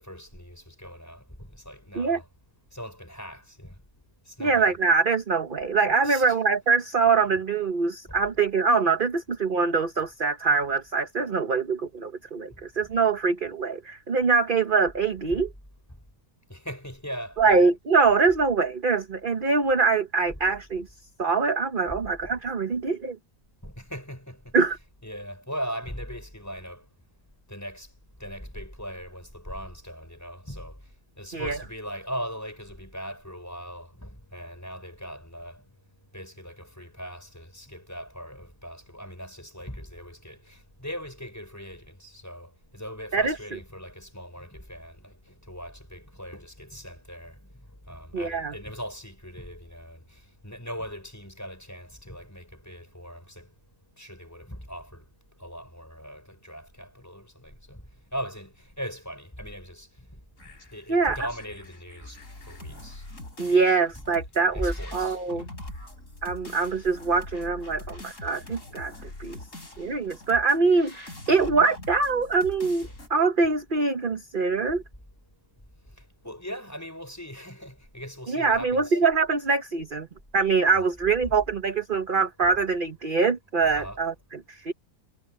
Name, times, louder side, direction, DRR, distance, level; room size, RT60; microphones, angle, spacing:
voice 1, 0.0-2.3 2.7-3.8 4.2-4.7 5.6-6.4 8.0-8.3 12.5-12.9 15.3-15.5 15.9-16.0 16.5-17.7 20.2-20.4 21.9-22.4 23.6-26.9 27.5-35.7 36.1-53.5 54.0-55.1 55.4-63.1 63.4-63.8 64.4-65.5 71.4-71.5 72.8-73.0 74.1-74.2 74.7-74.8 75.8-79.0 80.7-80.8 81.2-81.3 82.4-82.6 83.6-84.1, equal, 10° left, 6.6 m, -40 dB
voice 2, 4.4-15.5 17.4-20.9 21.2-23.2 24.5-24.8 31.3-31.6 43.1-43.4 48.1-48.5 60.9-61.2 63.4-65.4 66.2-68.9 69.2-69.4 69.8-74.8 78.3-80.1 80.3-84.1 84.5-84.7, right 4 dB, 35° right, 1.1 m, -24 dB
sound 1, 60.4-73.1, left 1 dB, 50° left, 6.6 m, -44 dB
omnidirectional pair, 1.8 m